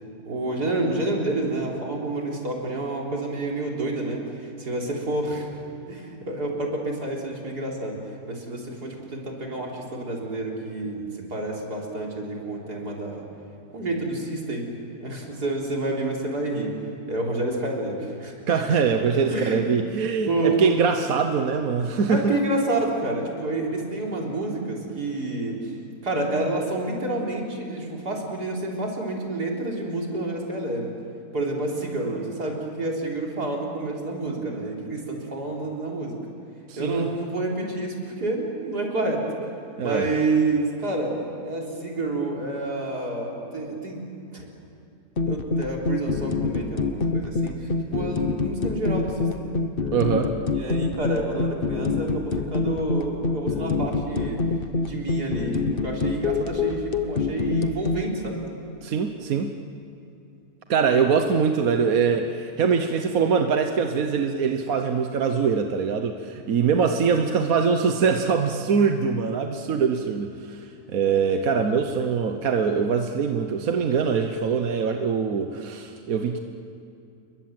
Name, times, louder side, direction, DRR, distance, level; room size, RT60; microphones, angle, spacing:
voice 1, 0.2-5.5 5.9-8.0 8.3-13.3 13.7-14.7 15.0-16.7 17.1-18.4 19.3-19.6 20.3-20.6 22.1-25.7 26.0-30.9 31.3-36.2 36.8-39.3 39.8-44.0 44.3-44.5 45.3-49.6 50.5-54.4 54.8-58.4, right 2 dB, 80° right, -1 dB, 4.3 m, -29 dB
voice 2, 18.5-22.4 36.7-37.1 39.8-40.1 49.9-50.3 58.8-59.5 60.7-76.4, right 6 dB, 65° right, 5 dB, 1.4 m, -23 dB
sound 1, 45.2-58.0, left 4 dB, 40° left, 1.2 m, -26 dB
28.5 x 22.5 x 7.7 m, 2.7 s
omnidirectional pair, 1.7 m